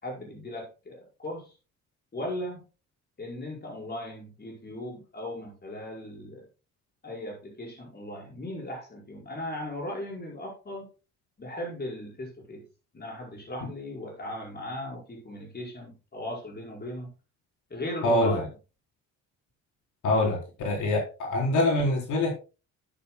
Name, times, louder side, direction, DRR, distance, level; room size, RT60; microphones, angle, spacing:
voice 1, 0.0-1.6 2.1-2.6 3.2-6.5 7.0-10.9 11.4-12.6 12.9-17.1 17.7-18.5, left 1 dB, 35° left, -1 dB, 5.1 m, -37 dB
voice 2, 18.0-18.4 20.0-22.3, left 1 dB, 80° left, 0 dB, 4.0 m, -25 dB
12.0 x 10.5 x 2.2 m, 0.31 s
cardioid pair, 90°, 30 cm